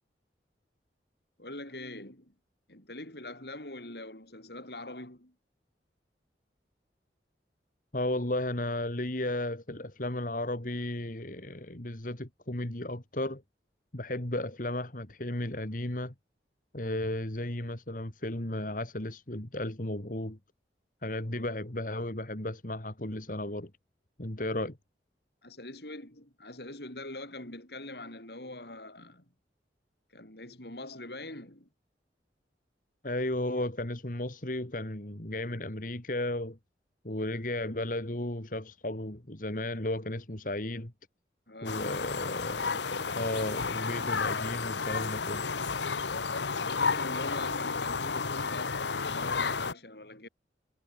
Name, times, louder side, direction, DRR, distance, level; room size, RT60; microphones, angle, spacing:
voice 1, 1.4-2.3 2.7-5.3 21.3-21.6 25.4-29.3 30.1-31.7 41.5-42.0 46.6-50.3, left 2 dB, 65° left, 7.2 m, -43 dB
voice 2, 7.9-13.4 13.9-16.1 16.7-20.4 21.0-23.7 24.2-24.8 33.0-36.6 37.0-40.9 41.6-45.5, left 1 dB, 50° left, 2.5 m, -34 dB
sound 1, 41.7-49.7, left 5 dB, 85° left, 1.2 m, -32 dB
head